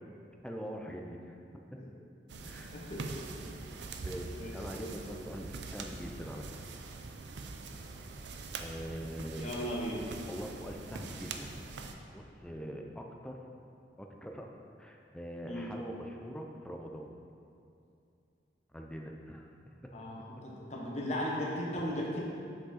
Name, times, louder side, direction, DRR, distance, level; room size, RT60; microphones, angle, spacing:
voice 1, 0.4-1.4 1.7-1.8 2.4-2.7 3.7-6.5 8.6-9.4 10.3-11.5 12.1-13.4 14.0-14.5 14.8-17.1 18.7-19.7, equal, 5° left, 1 dB, 0.4 m, -43 dB
sound 1, 2.3-11.9, right 3 dB, 75° right, 0.5 m, -44 dB
voice 2, 2.7-3.2 4.0-4.9 9.4-10.0 15.5-15.7 19.9-22.2, equal, 40° left, -3 dB, 1.0 m, -37 dB
6.3 x 5.0 x 4.1 m, 2.6 s
head